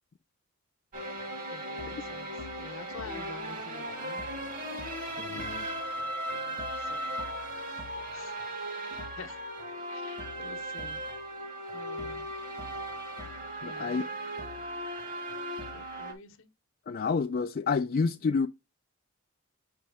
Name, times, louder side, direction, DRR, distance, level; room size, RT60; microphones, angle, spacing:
sound 1, 0.9-16.1, right 1 dB, 40° right, 1.6 m, -37 dB
voice 1, 1.5-2.3 2.6-4.2 5.3-7.2 7.6-7.8 8.1-8.3 9.2-9.4 9.9-11.0 11.7-12.2 13.6-14.1 15.7-16.5, left 4 dB, 60° left, 0.9 m, -48 dB
voice 2, 5.2-5.7 13.6-14.0 16.9-18.5, left 4 dB, 45° left, 0.3 m, -29 dB
6.6 x 5.2 x 3.4 m
head